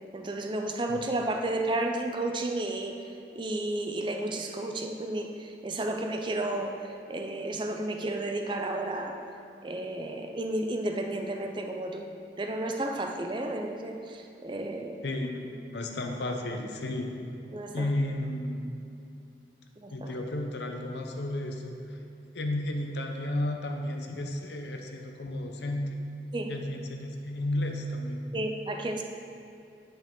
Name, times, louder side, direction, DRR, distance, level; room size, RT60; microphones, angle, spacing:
voice 1, 0.1-3.0 3.3-6.8 7.1-9.2 9.6-12.1 12.4-15.0 17.5-17.9 19.8-20.1 26.3-26.5 28.3-29.0, right 1 dB, 25° right, 4 dB, 0.5 m, -32 dB
voice 2, 15.0-17.2 17.7-18.7 19.9-21.8 22.3-25.9 26.5-28.2, left 1 dB, 75° left, 3 dB, 0.7 m, -33 dB
9.3 x 5.4 x 3.7 m, 2.6 s
head